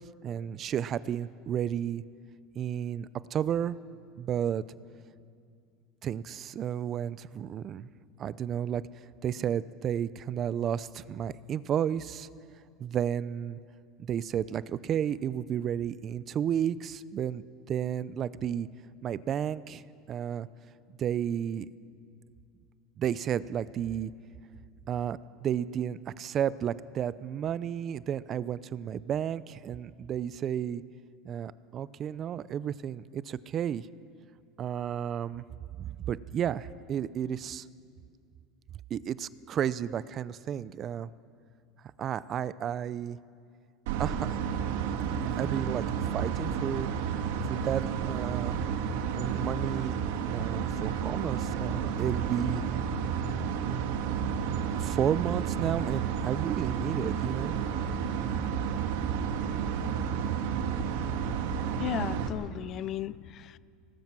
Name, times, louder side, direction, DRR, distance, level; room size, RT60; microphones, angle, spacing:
voice 1, 0.2-2.0 2.5-3.8 4.2-4.6 6.0-7.9 8.2-8.8 9.2-12.3 12.8-13.6 14.0-18.7 19.0-19.8 20.1-20.5 21.0-21.7 23.0-24.1 24.9-30.8 31.2-33.9 34.6-35.4 35.8-37.7 38.9-41.1 42.0-43.2 44.0-44.3 45.2-45.9 46.1-46.9 47.5-48.6 49.1-50.0 50.3-52.6 54.8-57.5, right 9 dB, 35° right, 17 dB, 0.5 m, -32 dB
sound 1, 43.9-62.3, right 7 dB, 85° right, 1.7 m, -31 dB
voice 2, 61.8-63.6, left 12 dB, 40° left, 19 dB, 0.4 m, -35 dB
24.5 x 19.0 x 6.1 m, 2.3 s
supercardioid pair, 140°, 0 cm